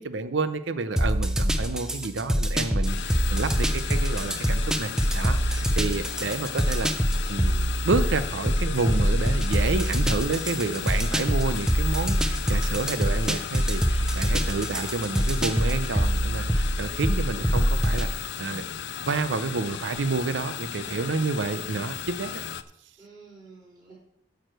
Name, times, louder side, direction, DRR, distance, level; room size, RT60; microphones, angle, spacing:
voice 1, 0.0-6.9 7.3-18.7 19.1-22.4, right 3 dB, 80° right, 12 dB, 0.6 m, -29 dB
sound 1, 1.0-18.1, equal, 5° right, 0.4 m, -25 dB
sound 2, 2.8-22.6, left 8 dB, 65° left, 0.4 m, -36 dB
voice 2, 20.8-21.3 23.0-23.9, right 3 dB, 20° right, -7 dB, 4.3 m, -49 dB
9.1 x 4.8 x 7.6 m, 0.71 s
head